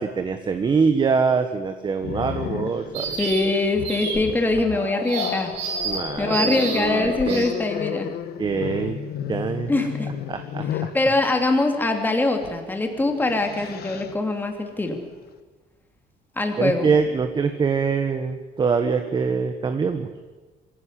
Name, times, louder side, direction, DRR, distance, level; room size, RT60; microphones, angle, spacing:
voice 1, 0.0-3.2 5.8-7.5 8.4-9.0 9.3-9.7 10.3-10.9 16.6-20.1, right 5 dB, 25° right, 8 dB, 1.3 m, -24 dB
Growling, 2.0-11.0 12.4-12.6 13.0-14.2, left 10 dB, 60° left, 1.3 m, -32 dB
sound 1, 2.9-3.5 3.8-4.2 5.0-6.0 6.3-6.9 7.3-7.5, right 5 dB, 75° right, 6.4 m, -29 dB
voice 2, 3.2-5.5 6.2-8.1 9.7-10.1 10.9-15.0 16.4-16.9, left 2 dB, 10° left, 4 dB, 2.9 m, -23 dB
24.0 x 16.5 x 10.0 m, 1.3 s
cardioid pair, 165°, 18 cm